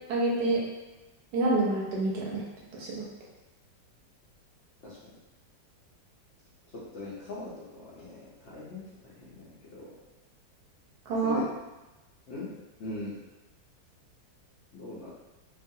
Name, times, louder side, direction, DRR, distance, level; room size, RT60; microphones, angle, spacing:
voice 1, 0.1-0.6 1.3-2.4 2.7-3.1 11.1-11.4, right 2 dB, 70° right, -4 dB, 1.0 m, -27 dB
voice 2, 6.7-9.9 11.2-11.4 12.3-12.5 12.8-13.2 14.7-15.1, left 2 dB, 70° left, -9 dB, 0.6 m, -41 dB
2.9 x 2.4 x 2.7 m, 1.0 s
omnidirectional pair, 2.0 m